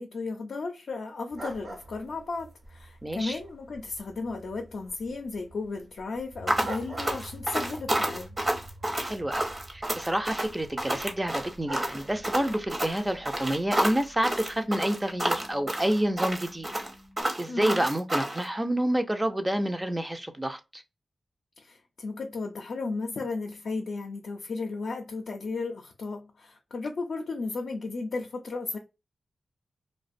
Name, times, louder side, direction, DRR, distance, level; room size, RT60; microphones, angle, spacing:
voice 1, 0.0-8.4 17.5-17.8 21.6-28.8, left 3 dB, 75° left, 0.4 m, -34 dB
sound 1, 1.3-13.5, right 2 dB, 60° right, 1.0 m, -47 dB
voice 2, 3.0-3.4 9.0-9.5 9.7-16.7 17.4-20.8, right 1 dB, 15° right, 0.4 m, -28 dB
sound 2, 6.3-17.2, right 1 dB, 90° right, 0.8 m, -50 dB
sound 3, 6.5-18.4, right 1 dB, 35° right, 0.8 m, -30 dB
2.4 x 2.1 x 2.5 m
cardioid pair, 65°, 0 cm